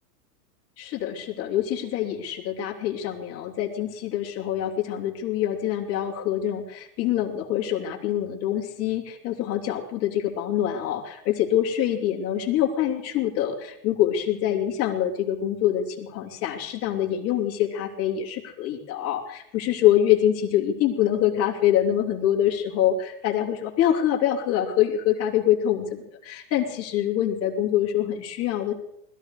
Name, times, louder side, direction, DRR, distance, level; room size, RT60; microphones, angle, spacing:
voice 1, 0.8-28.7, left 11 dB, 30° left, -2 dB, 3.0 m, -25 dB
21.0 x 13.5 x 5.0 m, 0.79 s
supercardioid pair, 155°, 49 cm